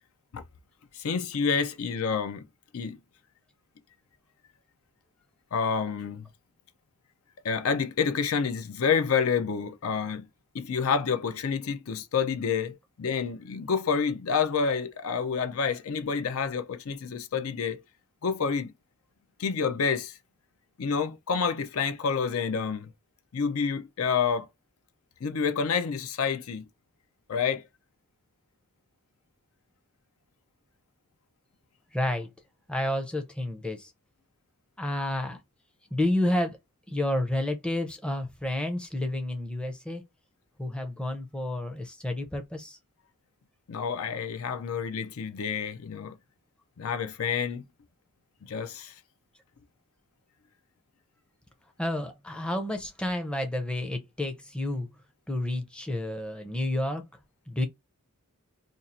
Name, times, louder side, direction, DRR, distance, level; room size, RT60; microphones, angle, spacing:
voice 1, 0.9-2.5 2.7-3.0 5.5-6.3 7.4-10.3 10.5-17.8 18.2-18.7 19.4-20.2 20.8-22.9 23.3-24.5 25.2-26.7 27.3-27.7 43.7-46.2 46.8-47.7 48.4-48.9, left 6 dB, 65° left, 0.5 m, -28 dB
voice 2, 31.9-32.3 32.7-33.9 34.8-35.4 35.9-36.6 36.9-40.0 40.6-42.8 51.8-54.9 55.3-57.0 57.5-57.7, left 1 dB, 5° left, 0.6 m, -30 dB
2.6 x 2.4 x 4.1 m
head